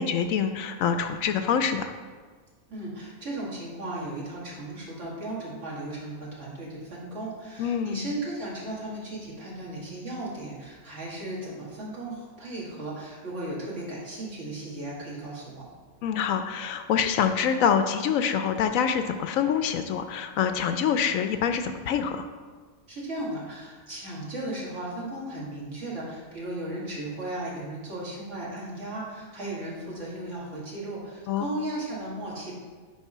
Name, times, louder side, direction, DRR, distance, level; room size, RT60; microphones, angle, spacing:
voice 1, 0.0-1.9 7.6-8.1 16.0-22.2 31.3-31.4, left 7 dB, 75° left, 8 dB, 1.0 m, -26 dB
voice 2, 2.7-15.7 22.9-32.5, right 1 dB, 60° right, -6 dB, 2.4 m, -36 dB
9.2 x 3.6 x 5.6 m, 1.5 s
omnidirectional pair, 1.5 m